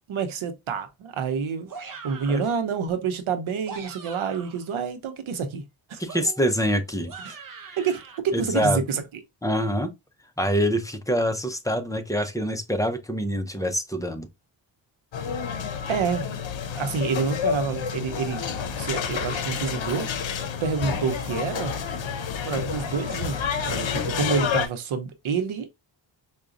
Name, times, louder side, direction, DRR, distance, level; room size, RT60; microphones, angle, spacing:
voice 1, 0.1-5.6 5.9-6.0 7.3-7.4 7.8-9.0 15.9-16.4 16.7-20.1 20.6-21.8 22.4-25.7, right 5 dB, 80° right, 0.8 m, -28 dB
sound 1, 1.7-2.5 3.5-4.7 6.1-8.2, right 5 dB, 45° right, 0.7 m, -42 dB
voice 2, 6.0-7.4 7.7-7.8 8.3-8.8 9.4-9.9 10.4-14.3, equal, 5° left, 0.5 m, -25 dB
sound 2, 15.1-24.7, left 7 dB, 70° left, 0.7 m, -29 dB
4.8 x 2.3 x 2.5 m
cardioid pair, 85°, 48 cm